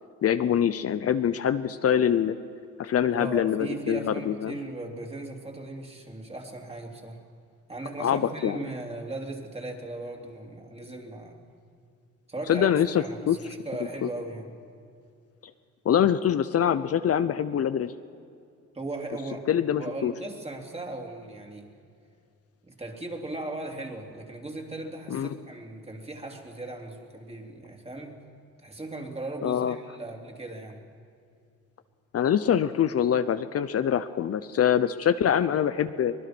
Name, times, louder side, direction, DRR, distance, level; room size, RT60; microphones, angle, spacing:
voice 1, 0.2-2.3 2.8-4.6 8.0-8.6 12.5-13.4 14.0-14.1 15.8-17.9 19.5-20.1 25.1-25.3 29.4-29.8 32.1-36.1, left 9 dB, 50° left, 11 dB, 0.8 m, -24 dB
voice 2, 3.1-7.2 7.7-11.4 12.3-14.5 18.7-19.5 19.7-21.7 22.6-28.2 28.6-30.8, right 2 dB, 20° right, 2 dB, 3.3 m, -38 dB
24.0 x 19.5 x 6.2 m, 2.4 s
cardioid pair, 90°, 30 cm